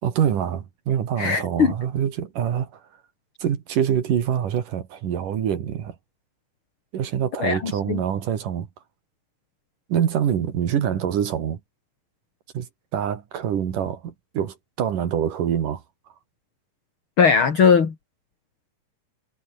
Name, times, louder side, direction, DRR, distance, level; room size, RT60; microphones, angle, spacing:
voice 1, 0.0-2.7 3.4-6.0 6.9-8.7 9.9-11.6 12.5-12.7 12.9-15.8, right 9 dB, 70° right, 3.6 m, -25 dB
voice 2, 1.2-1.7 7.4-8.0 17.2-17.9, left 6 dB, 40° left, 3.0 m, -19 dB
omnidirectional pair, 4.0 m